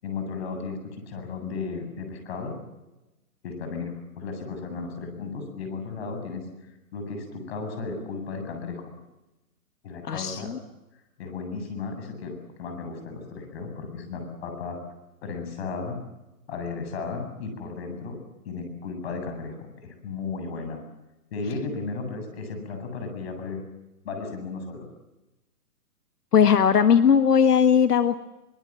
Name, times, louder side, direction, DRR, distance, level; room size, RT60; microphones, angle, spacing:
voice 1, 0.0-2.5 3.4-6.4 6.9-8.9 9.8-10.5 11.2-12.3 12.6-14.8 15.2-16.0 16.5-18.2 18.4-20.8 21.3-23.6 24.0-24.8, left 4 dB, 40° left, 6 dB, 7.9 m, -34 dB
voice 2, 10.0-10.6 26.3-28.2, left 7 dB, 85° left, 9 dB, 1.5 m, -19 dB
24.0 x 22.5 x 7.6 m, 1.0 s
hypercardioid pair, 155°, 46 cm